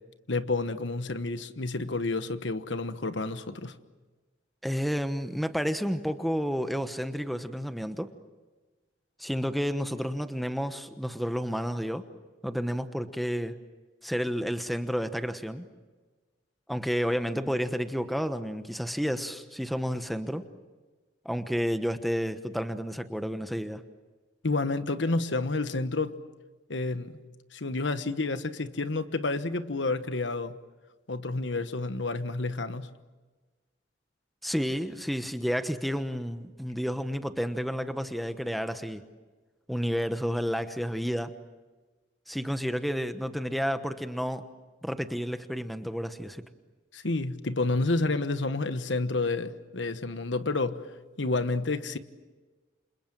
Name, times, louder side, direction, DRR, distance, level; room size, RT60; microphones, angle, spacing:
voice 1, 0.3-3.8 24.4-26.2 26.7-27.2 27.5-30.6 31.1-32.9 46.9-50.8 51.2-52.0, left 3 dB, 75° left, 11 dB, 1.3 m, -29 dB
voice 2, 4.6-8.1 9.2-12.1 12.4-13.6 14.0-15.6 16.7-20.4 21.2-23.8 34.4-39.0 39.7-41.3 42.3-44.5 44.8-46.4, equal, ahead, 9 dB, 1.1 m, -31 dB
29.0 x 27.0 x 7.5 m, 1.3 s
head